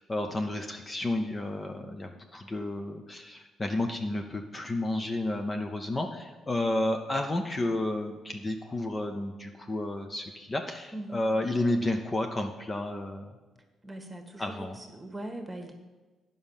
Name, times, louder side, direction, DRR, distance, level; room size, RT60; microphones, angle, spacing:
voice 1, 0.0-13.3 14.4-14.8, left 1 dB, 25° left, 4 dB, 0.7 m, -31 dB
voice 2, 10.9-11.2 13.8-15.7, right 1 dB, 15° right, 4 dB, 1.5 m, -40 dB
9.5 x 5.4 x 7.2 m, 1.2 s
cardioid pair, 90°, 0 cm